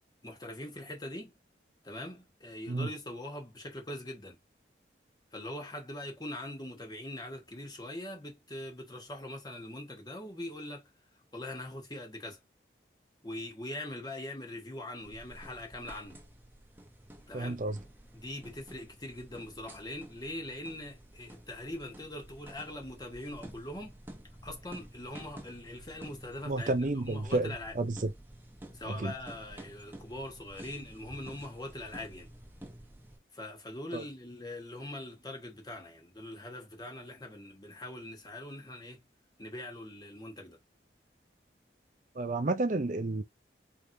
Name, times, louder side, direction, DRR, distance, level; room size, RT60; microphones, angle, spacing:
voice 1, 0.2-1.3 1.8-4.4 5.3-10.9 11.3-12.4 13.2-16.2 17.3-17.6 18.1-24.0 24.4-27.7 28.7-32.3 33.3-39.1 39.4-40.6, left 1 dB, 20° left, 1.3 m, -42 dB
sound 1, 15.0-33.2, right 1 dB, 10° right, 0.9 m, -51 dB
voice 2, 17.3-17.8 26.5-28.1 29.0-29.1 33.9-34.0 42.2-43.2, right 2 dB, 45° right, 0.5 m, -31 dB
4.6 x 3.6 x 2.6 m
head